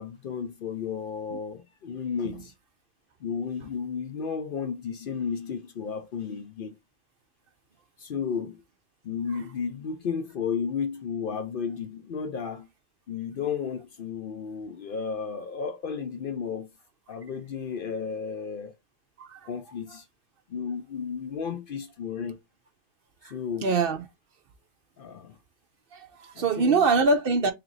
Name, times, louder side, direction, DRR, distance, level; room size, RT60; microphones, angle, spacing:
voice 1, 0.0-2.5 3.2-6.7 8.0-8.6 9.0-12.7 13.1-16.7 17.1-18.7 19.5-20.1 20.5-22.4 23.2-23.7 25.0-25.4 26.4-26.8, left 6 dB, 60° left, 0.6 m, -33 dB
voice 2, 19.2-19.5 23.2-23.3 23.6-24.1 25.9-27.5, right 4 dB, 60° right, 0.7 m, -24 dB
3.3 x 2.9 x 3.8 m
omnidirectional pair, 1.2 m